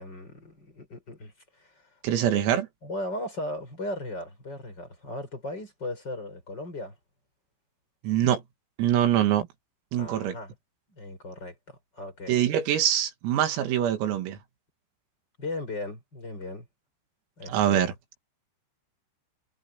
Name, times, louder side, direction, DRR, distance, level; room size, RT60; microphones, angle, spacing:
voice 1, 0.0-1.8 2.8-6.9 10.0-10.5 10.9-12.4 15.4-16.7 17.4-17.9, left 1 dB, 20° left, 7.0 m, -37 dB
voice 2, 2.0-2.7 8.0-8.4 8.8-9.5 9.9-10.4 12.3-14.4 17.5-17.9, right 10 dB, 85° right, 5.0 m, -24 dB
omnidirectional pair, 5.9 m